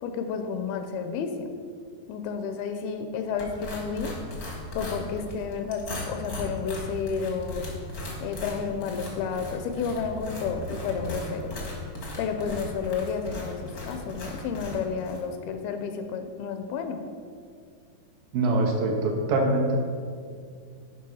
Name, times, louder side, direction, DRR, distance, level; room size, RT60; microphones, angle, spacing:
voice 1, 0.0-1.5 2.1-4.1 4.7-7.7 8.2-11.5 12.2-17.0, left 6 dB, 80° left, 7 dB, 2.3 m, -31 dB
sound 1, 3.4-15.2, left 1 dB, 55° left, 0.9 m, -37 dB
voice 2, 18.3-19.8, right 2 dB, 75° right, 1 dB, 2.4 m, -24 dB
10.5 x 5.3 x 5.5 m, 2.2 s
omnidirectional pair, 4.6 m